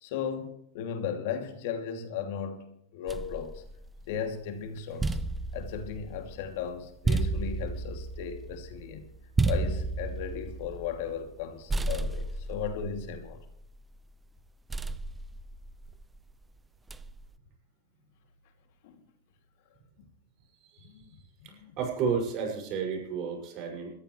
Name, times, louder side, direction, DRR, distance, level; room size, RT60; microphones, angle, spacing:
voice 1, 0.0-3.6 4.1-5.2 5.5-9.1 9.4-13.4 18.8-19.0 20.0-20.1 20.8-21.8, left 7 dB, 65° left, 2.7 m, -36 dB
sound 1, 3.1-4.3 4.8-11.4 11.7-14.0 14.7-16.2 16.9-17.4, right 3 dB, 10° right, 0.6 m, -33 dB
voice 2, 21.4-23.9, right 6 dB, 45° right, 6.4 m, -32 dB
21.0 x 14.0 x 3.3 m
hypercardioid pair, 125°, 0 cm